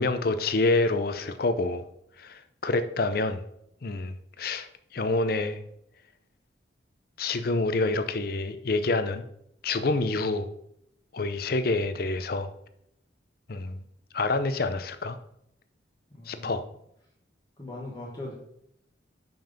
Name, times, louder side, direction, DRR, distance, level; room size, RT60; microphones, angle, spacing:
voice 1, 0.0-1.8 2.2-3.4 3.8-4.7 4.9-5.6 7.2-9.2 9.6-10.5 11.1-12.5 13.5-13.8 14.1-15.2 16.3-16.6, left 3 dB, 50° left, 10 dB, 0.5 m, -27 dB
voice 2, 16.1-16.6 17.6-18.3, left 2 dB, 20° left, -3 dB, 1.3 m, -39 dB
5.7 x 5.3 x 5.2 m, 0.75 s
head